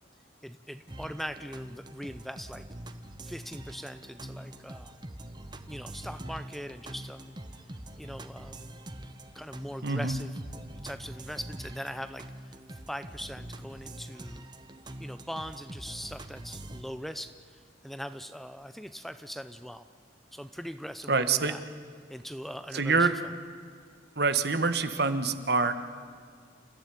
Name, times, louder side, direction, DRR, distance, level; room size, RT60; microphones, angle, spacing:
voice 1, 0.4-2.6 3.2-4.9 5.7-7.4 8.0-8.8 9.3-10.4 10.8-14.5 15.0-19.8 20.3-21.6 22.1-23.1, equal, ahead, 11 dB, 0.6 m, -41 dB
sound 1, 0.9-16.8, right 1 dB, 25° right, 1.2 m, -44 dB
voice 2, 9.8-10.2 21.1-21.5 22.7-23.1 24.1-25.8, right 4 dB, 60° right, 10 dB, 1.5 m, -26 dB
30.0 x 15.5 x 10.0 m, 2.1 s
head